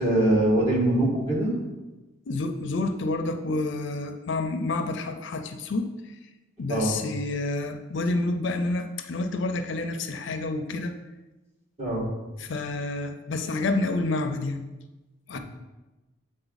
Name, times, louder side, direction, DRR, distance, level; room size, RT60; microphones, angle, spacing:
voice 1, 0.0-1.5 6.7-6.9 11.8-12.1 15.3-15.4, right 1 dB, 30° right, -5 dB, 1.7 m, -23 dB
voice 2, 2.3-5.9 6.6-10.9 12.4-14.6 15.3-15.4, left 2 dB, 60° left, 7 dB, 0.5 m, -29 dB
8.0 x 3.8 x 4.0 m, 1.1 s
head